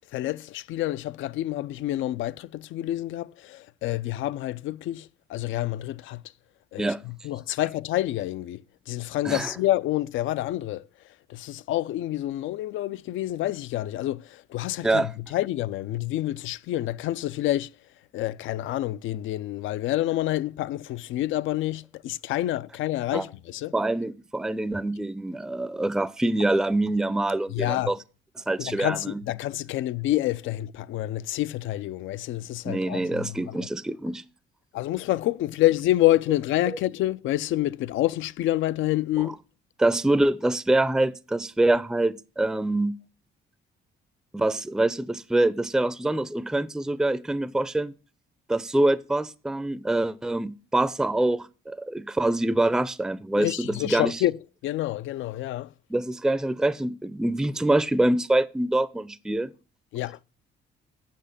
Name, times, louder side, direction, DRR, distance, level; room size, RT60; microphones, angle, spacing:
voice 1, 0.0-6.2 6.7-10.9 11.3-17.7 18.1-23.7 27.5-27.9 28.6-33.6 34.7-39.4 53.4-54.4 54.6-55.7 59.9-60.2, left 15 dB, 80° left, 0.4 m, -28 dB
voice 2, 23.7-28.0 28.5-29.2 32.6-34.2 39.8-42.9 44.3-47.9 48.5-54.2 55.9-59.5, right 2 dB, 5° right, 0.4 m, -25 dB
7.8 x 6.2 x 6.6 m
cardioid pair, 90°, 20 cm